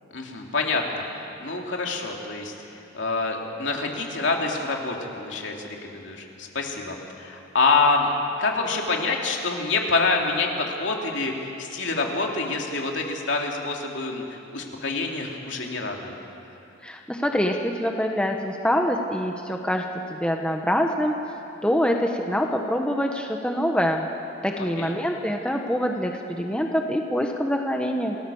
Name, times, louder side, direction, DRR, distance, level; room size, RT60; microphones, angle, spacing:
voice 1, 0.1-1.0 1.4-2.5 2.9-8.1 8.4-16.2 24.6-24.9, left 3 dB, 65° left, 0 dB, 3.0 m, -26 dB
voice 2, 16.8-19.8 20.1-21.1 21.6-24.1 24.4-28.2, equal, 5° left, 2 dB, 1.1 m, -25 dB
28.5 x 19.0 x 7.1 m, 2.8 s
head